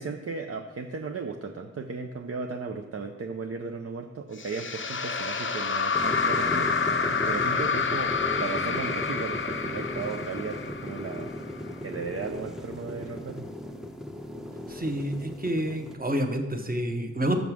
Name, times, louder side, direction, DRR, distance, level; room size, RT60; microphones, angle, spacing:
voice 1, 0.0-6.8 7.2-11.3 11.8-13.5, right 4 dB, 50° right, 4 dB, 0.5 m, -35 dB
sound 1, 4.4-11.7, left 5 dB, 40° left, 0.5 m, -28 dB
sound 2, 5.9-16.0, left 1 dB, ahead, 0.6 m, -36 dB
voice 2, 14.7-17.4, equal, 30° right, 5 dB, 1.0 m, -28 dB
6.0 x 5.3 x 6.1 m, 1.1 s
cardioid pair, 40°, 32 cm